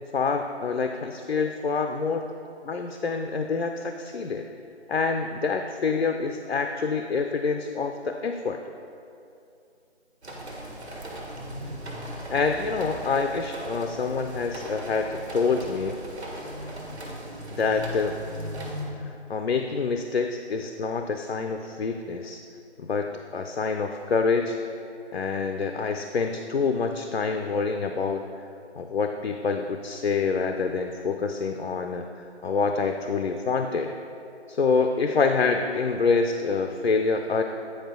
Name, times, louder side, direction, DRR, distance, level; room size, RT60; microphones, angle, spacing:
voice 1, 0.0-2.3 2.6-4.5 4.9-8.6 12.3-16.0 17.5-18.1 19.1-22.4 22.8-24.6 25.1-28.3 28.8-34.0 34.5-37.4, left 4 dB, 60° left, 4 dB, 0.5 m, -26 dB
sound 1, 10.2-18.9, equal, 65° right, 1.6 m, -37 dB
9.4 x 4.9 x 3.7 m, 2.6 s
figure-of-eight pair, 155°, 35 cm